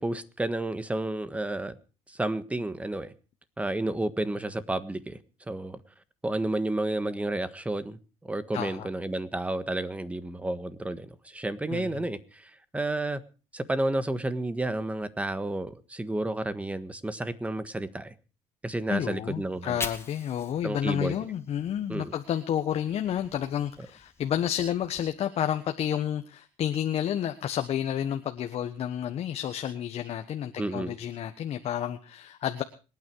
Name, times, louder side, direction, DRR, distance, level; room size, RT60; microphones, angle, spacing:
voice 1, 0.0-1.8 2.1-3.1 3.6-5.2 5.5-5.8 6.2-13.2 13.5-18.1 18.6-19.8 20.6-21.2 21.9-22.1 30.6-30.9, right 2 dB, 10° right, 1.5 m, -31 dB
voice 2, 8.5-8.9 11.7-11.9 18.9-32.6, left 10 dB, 50° left, 1.3 m, -30 dB
Fire, 19.4-22.6 22.9-25.0, left 4 dB, 20° left, 2.3 m, -43 dB
26.0 x 9.5 x 4.7 m
supercardioid pair, 100°, 13 cm